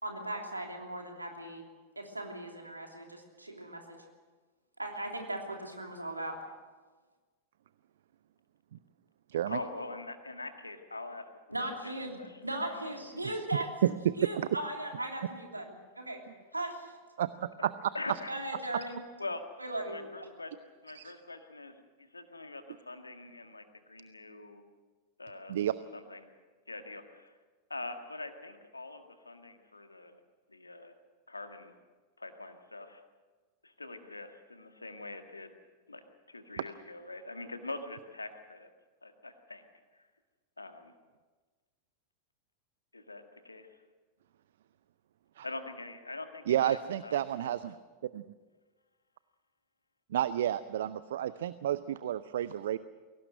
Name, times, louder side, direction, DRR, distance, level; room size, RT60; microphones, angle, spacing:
voice 1, 0.0-1.6 1.9-4.0 4.8-6.3 11.5-13.7 14.2-16.2 16.5-16.9 18.3-19.0 19.6-20.3, right 1 dB, 85° right, 2 dB, 3.1 m, -38 dB
voice 2, 9.5-11.2 11.6-12.4 12.7-12.9 17.9-18.4 19.2-19.4 19.9-20.5 20.8-24.6 25.2-25.6 25.9-26.2 26.7-27.3 27.7-30.2 30.5-30.9 31.3-31.8 32.2-33.0 33.6-35.5 35.9-36.0 36.3-38.7 39.0-39.6 40.6-40.9 42.9-43.7 45.4-46.8 47.0-47.2 47.5-47.7, left 2 dB, 80° left, 7 dB, 1.8 m, -43 dB
voice 3, 17.2-17.7 20.9-21.1 25.5-25.7 45.4-45.5 46.5-47.7 48.1-48.2 50.1-52.8, right 11 dB, 60° right, 16 dB, 0.5 m, -31 dB
22.0 x 18.0 x 7.8 m, 1.4 s
figure-of-eight pair, 90°, 0 cm